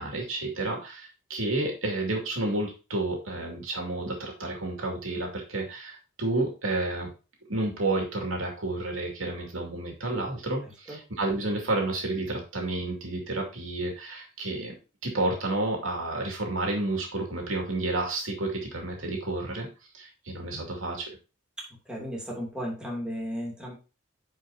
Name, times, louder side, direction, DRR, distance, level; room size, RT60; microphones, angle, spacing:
voice 1, 0.0-7.1 7.5-14.8 15.0-19.7 19.9-21.1, right 2 dB, 85° right, 1 dB, 2.6 m, -30 dB
voice 2, 21.6-23.7, equal, 5° right, -3 dB, 2.9 m, -35 dB
10.0 x 5.1 x 2.8 m, 0.31 s
head